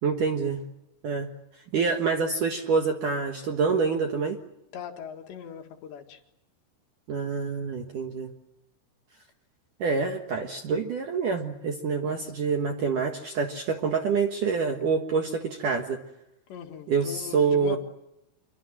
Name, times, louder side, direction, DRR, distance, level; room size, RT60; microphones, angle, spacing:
voice 1, 0.0-0.6 1.0-1.3 1.7-4.4 7.1-8.3 9.8-16.0 16.9-17.8, right 5 dB, 60° right, 4 dB, 2.3 m, -26 dB
voice 2, 4.7-6.2 16.5-17.8, left 8 dB, 65° left, 4 dB, 4.0 m, -39 dB
27.0 x 24.0 x 7.6 m, 0.88 s
omnidirectional pair, 5.7 m